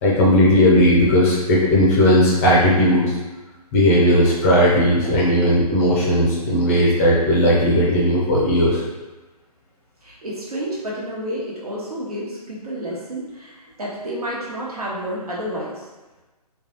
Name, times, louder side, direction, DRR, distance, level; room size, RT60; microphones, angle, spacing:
voice 1, 0.0-3.2 3.7-8.8, equal, 20° left, -4 dB, 0.6 m, -16 dB
voice 2, 10.0-15.9, right 1 dB, 70° right, -4 dB, 1.2 m, -30 dB
3.8 x 2.3 x 2.9 m, 1.2 s
figure-of-eight pair, 135°, 20 cm